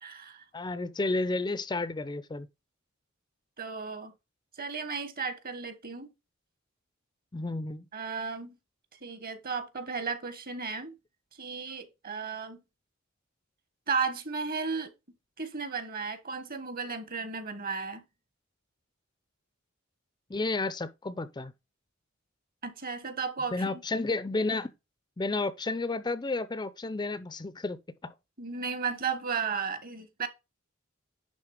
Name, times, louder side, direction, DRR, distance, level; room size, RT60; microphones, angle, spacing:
voice 1, 0.0-0.4 3.6-4.1 4.6-6.1 7.9-8.6 9.0-10.9 11.4-12.6 13.9-14.9 15.4-18.0 22.6-23.8 28.4-30.3, right 5 dB, 45° right, 1.3 m, -34 dB
voice 2, 0.5-2.5 7.3-7.9 20.3-21.5 23.5-24.7 25.2-28.1, left 3 dB, 20° left, 0.4 m, -31 dB
10.5 x 3.7 x 4.8 m
head